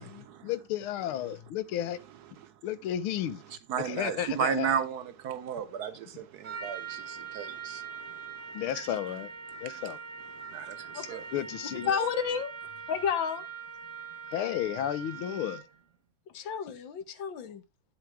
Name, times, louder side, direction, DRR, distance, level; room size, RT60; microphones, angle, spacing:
voice 1, 0.0-2.0 2.6-3.4 3.8-4.8 8.5-9.3 9.6-10.0 11.3-11.9 14.3-15.6, left 11 dB, 80° left, 1.6 m, -33 dB
voice 2, 3.7-8.3 9.6-9.8 10.5-11.3 12.0-12.2, right 8 dB, 75° right, 0.9 m, -34 dB
Trumpet, 6.4-15.8, right 6 dB, 45° right, 1.5 m, -42 dB
voice 3, 11.9-12.5 12.9-13.4 16.3-17.6, left 7 dB, 65° left, 1.7 m, -31 dB
9.1 x 7.9 x 3.4 m
omnidirectional pair, 2.3 m